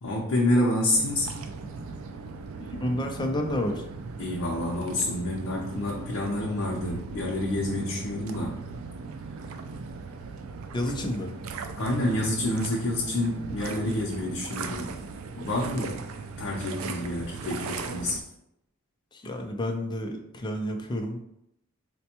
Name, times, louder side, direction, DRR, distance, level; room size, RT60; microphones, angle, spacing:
voice 1, 0.0-1.4 4.2-8.6 11.8-15.0 15.3-16.0 16.4-18.3, left 1 dB, 70° left, -4 dB, 0.6 m, -28 dB
sound 1, 0.9-18.2, right 4 dB, 80° right, 0.3 m, -38 dB
voice 2, 2.6-3.8 10.7-11.3 19.1-21.2, left 1 dB, 20° left, 3 dB, 0.4 m, -30 dB
4.2 x 2.2 x 2.8 m, 0.81 s
head